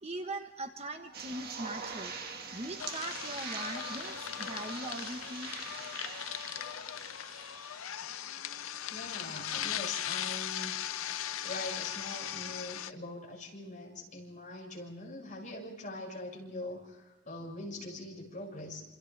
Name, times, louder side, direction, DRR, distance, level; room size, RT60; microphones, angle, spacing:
voice 1, 0.0-2.1 2.5-5.5, right 2 dB, 30° right, 5 dB, 1.2 m, -40 dB
sound 1, 1.1-7.9, right 5 dB, 50° right, 1.8 m, -43 dB
sound 2, 2.8-12.9, left 11 dB, 85° left, 0.6 m, -39 dB
voice 2, 8.9-10.7 11.4-18.8, left 2 dB, 40° left, -1 dB, 5.9 m, -42 dB
28.0 x 27.5 x 3.4 m, 1.1 s
head